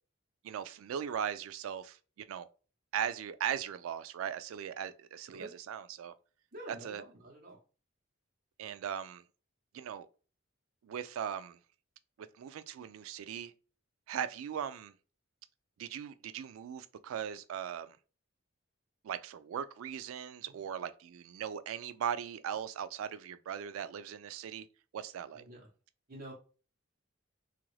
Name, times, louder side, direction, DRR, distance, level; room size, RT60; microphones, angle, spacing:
voice 1, 0.4-2.5 2.9-6.1 6.7-7.0 8.6-9.2 9.7-10.1 10.8-11.6 12.4-13.5 14.1-14.9 15.8-18.0 19.0-24.7 24.9-25.4, right 8 dB, 80° right, 0.3 m, -39 dB
voice 2, 6.5-7.6 20.5-20.6 25.3-25.7 26.1-26.3, right 1 dB, 45° right, 1.0 m, -48 dB
3.0 x 2.5 x 3.1 m
head